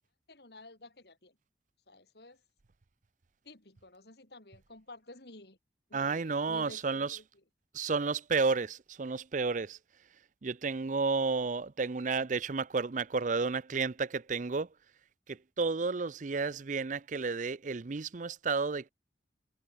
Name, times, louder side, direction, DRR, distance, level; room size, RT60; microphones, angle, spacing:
voice 1, 0.3-1.4 1.9-2.4 3.4-5.6 5.9-7.2, left 2 dB, 60° left, 3.1 m, -52 dB
voice 2, 5.9-7.2 7.7-9.8 10.4-14.7 15.3-18.9, right 4 dB, 45° right, 0.5 m, -32 dB
head